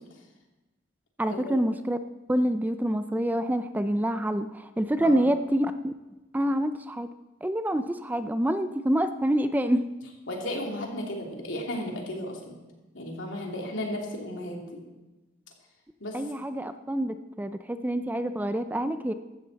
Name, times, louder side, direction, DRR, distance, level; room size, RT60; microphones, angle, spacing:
voice 1, 1.2-2.0 2.3-5.9 6.3-7.1 7.4-9.9 16.1-19.1, equal, 10° right, 10 dB, 0.4 m, -27 dB
voice 2, 5.0-5.4 10.3-12.6 12.9-14.8 16.0-16.3, left 1 dB, 75° left, 0 dB, 2.8 m, -34 dB
15.5 x 12.5 x 4.1 m, 1.1 s
head